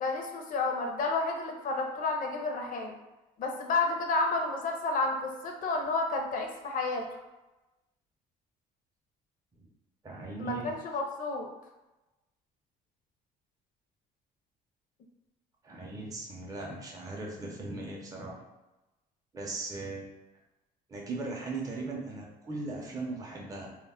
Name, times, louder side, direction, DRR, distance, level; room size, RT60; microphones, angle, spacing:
voice 1, 0.0-2.9 3.4-7.1 10.4-11.5, left 3 dB, 55° left, 2 dB, 0.5 m, -31 dB
voice 2, 10.0-10.7 15.6-18.5 19.3-20.1 20.9-23.8, right 3 dB, 20° right, -2 dB, 0.5 m, -38 dB
2.2 x 2.0 x 3.5 m, 1.0 s
cardioid pair, 110°, 17 cm